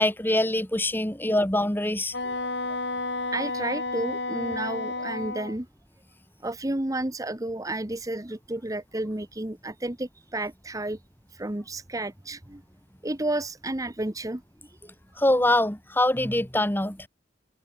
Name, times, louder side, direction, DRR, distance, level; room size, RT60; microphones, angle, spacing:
voice 1, 0.0-2.1 15.2-17.1, left 1 dB, 10° left, 2.5 m, -24 dB
Wind instrument woodwind instrument, 2.1-5.6, left 3 dB, 65° left, 6.7 m, -31 dB
voice 2, 3.3-5.7 6.4-11.0 11.3-12.6 13.0-14.9, right 1 dB, 20° right, 1.0 m, -32 dB
head